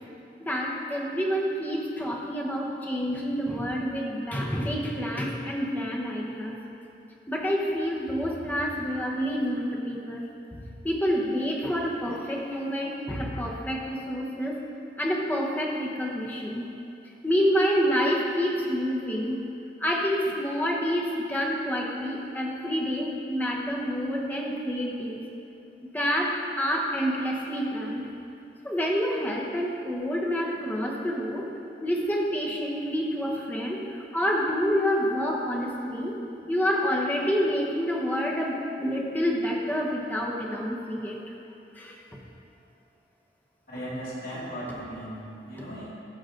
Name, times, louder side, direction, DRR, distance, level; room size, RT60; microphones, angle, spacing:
voice 1, 0.4-6.6 7.3-10.2 10.8-14.6 15.0-16.6 17.2-19.4 19.8-25.2 25.9-28.0 28.6-31.5 31.8-36.2 36.5-41.2 41.8-42.0, equal, 10° left, -3 dB, 1.0 m, -28 dB
voice 2, 43.7-45.9, equal, 55° left, -8 dB, 2.4 m, -37 dB
14.5 x 6.1 x 3.9 m, 2.7 s
head